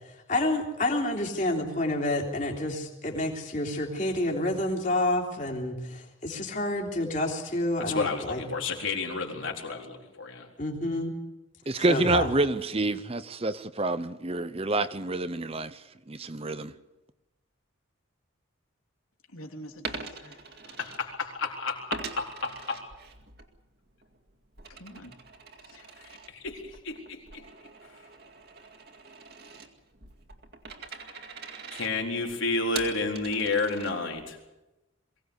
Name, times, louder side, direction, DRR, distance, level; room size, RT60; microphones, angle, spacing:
voice 1, 0.3-8.4 10.6-11.2 11.9-12.3, left 1 dB, 35° left, 3.4 m, -29 dB
voice 2, 7.8-10.5 20.6-22.8 26.0-27.4 31.1-31.2 31.7-34.4, left 3 dB, 70° left, 4.0 m, -31 dB
voice 3, 11.7-15.8 16.1-16.7, right 2 dB, 30° right, 0.7 m, -28 dB
voice 4, 19.3-20.6 24.7-25.2 25.6-25.9, equal, 90° left, 3.4 m, -46 dB
Coin (dropping), 19.7-21.4 21.9-23.5 23.9-34.3, right 4 dB, 50° right, 2.2 m, -43 dB
22.5 x 17.5 x 8.2 m
head